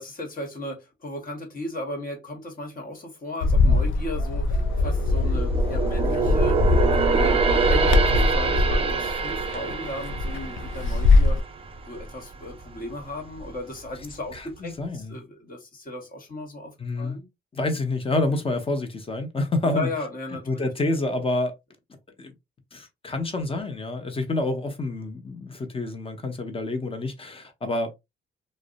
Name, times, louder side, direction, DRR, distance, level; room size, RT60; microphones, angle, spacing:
voice 1, 0.0-11.4 11.8-17.3 19.6-20.6, left 1 dB, 45° left, 1.2 m, -36 dB
Bird, 3.4-11.4, left 2 dB, 80° left, 0.5 m, -22 dB
sound 1, 4.6-12.1 12.5-12.7 13.3-14.0 14.3-14.4, right 5 dB, 30° right, 0.4 m, -26 dB
voice 2, 14.3-15.2 16.8-17.2 17.5-19.9 20.5-21.5 22.2-22.3 22.7-27.9, left 2 dB, 30° left, 0.7 m, -28 dB
2.7 x 2.0 x 2.5 m
cardioid pair, 90°, 20 cm